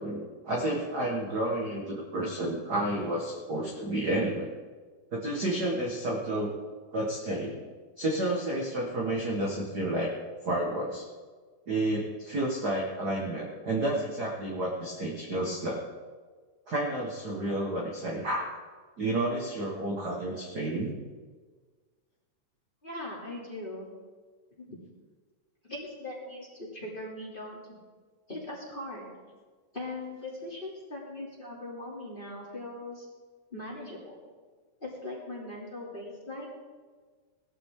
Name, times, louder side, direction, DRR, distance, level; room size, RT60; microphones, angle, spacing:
voice 1, 0.0-4.5 5.1-6.5 6.9-7.7 8.0-10.1 10.4-11.1 11.7-15.8 16.7-18.5 19.0-21.0, right 1 dB, 40° right, -2 dB, 1.6 m, -30 dB
voice 2, 22.8-23.9 24.6-24.7 25.6-27.8 28.3-29.2 29.7-33.1 33.5-34.2 34.8-36.5, left 1 dB, 15° left, -4 dB, 2.7 m, -40 dB
18.5 x 13.0 x 3.7 m, 1.5 s
omnidirectional pair, 3.7 m